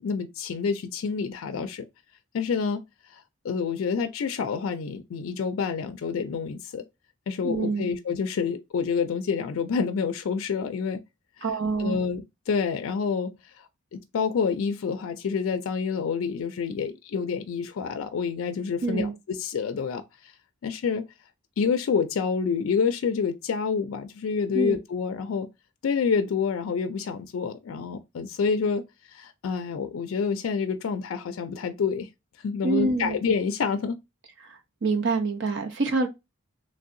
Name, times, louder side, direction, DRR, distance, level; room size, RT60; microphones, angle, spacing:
voice 1, 0.0-1.9 2.3-2.8 3.1-6.8 7.3-11.0 11.4-11.5 11.8-13.6 13.9-20.3 20.6-21.1 21.6-25.5 25.8-28.8 29.1-32.1 32.4-34.0, left 5 dB, 70° left, 0.4 m, -28 dB
voice 2, 7.4-7.9 11.4-12.0 18.8-19.1 24.5-24.8 32.6-33.2 34.4-34.5 34.8-36.1, right 3 dB, 60° right, 0.7 m, -26 dB
3.1 x 2.7 x 2.5 m
head